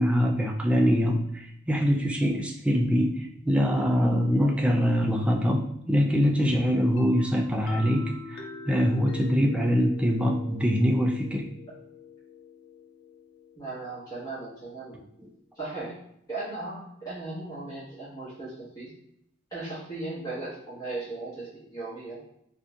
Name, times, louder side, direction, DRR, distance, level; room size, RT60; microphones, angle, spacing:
voice 1, 0.0-11.5 15.2-15.3, equal, 5° right, 1 dB, 0.3 m, -24 dB
sound 1, 7.0-14.6, left 4 dB, 85° left, 0.4 m, -44 dB
voice 2, 13.6-15.0 15.5-15.9 16.3-18.9 19.5-22.2, right 2 dB, 20° left, -11 dB, 1.3 m, -37 dB
3.8 x 2.5 x 2.4 m, 0.76 s
head